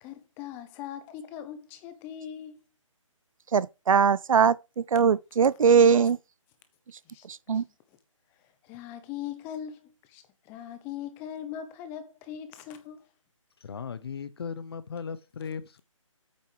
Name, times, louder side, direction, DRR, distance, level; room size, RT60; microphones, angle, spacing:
voice 1, 0.0-2.6 7.1-7.2 7.5-7.6 8.6-13.0, left 9 dB, 10° left, 0.8 m, -40 dB
voice 2, 3.5-6.2 7.5-7.6, right 6 dB, 85° right, 0.4 m, -21 dB
voice 3, 13.6-15.8, left 6 dB, 50° left, 0.8 m, -37 dB
8.5 x 6.2 x 4.7 m
hypercardioid pair, 160°, 17 cm